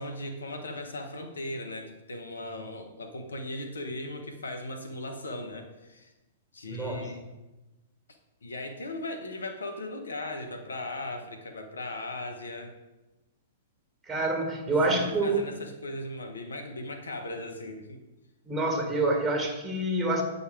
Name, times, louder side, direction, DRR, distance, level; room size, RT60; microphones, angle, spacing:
voice 1, 0.0-6.1 6.5-7.3 8.4-12.7 14.9-18.0, left 1 dB, 80° left, 5 dB, 1.2 m, -38 dB
voice 2, 6.7-7.1 14.0-15.4 18.5-20.2, right 2 dB, 10° right, 2 dB, 1.9 m, -27 dB
8.3 x 5.5 x 4.6 m, 1.0 s
hypercardioid pair, 110°, 0 cm